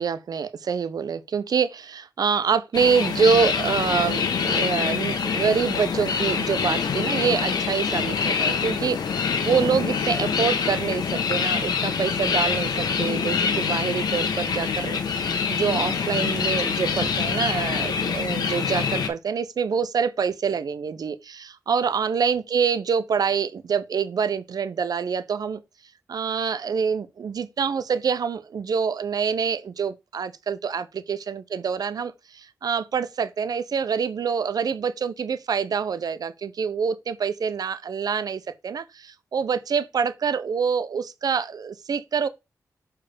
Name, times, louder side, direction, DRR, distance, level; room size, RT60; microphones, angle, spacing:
voice 1, 0.0-25.6 26.1-42.3, right 6 dB, 70° right, 0.6 m, -26 dB
sound 1, 2.7-19.1, left 6 dB, 85° left, 1.1 m, -25 dB
6.8 x 4.5 x 3.5 m
cardioid pair, 65°, 7 cm